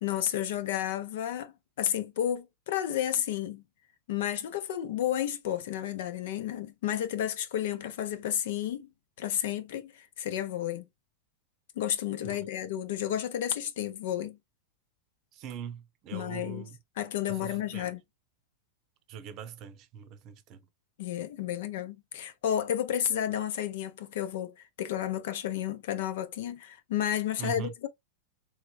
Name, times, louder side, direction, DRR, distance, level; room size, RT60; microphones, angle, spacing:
voice 1, 0.0-3.6 4.1-8.9 9.2-10.9 11.8-14.4 16.1-16.7 17.0-18.0 21.0-27.9, left 11 dB, 70° left, 0.8 m, -32 dB
voice 2, 15.3-16.8 17.3-17.9 19.1-20.7 27.4-27.7, right 8 dB, 45° right, 0.7 m, -41 dB
3.6 x 3.2 x 2.3 m
hypercardioid pair, 125°, 0 cm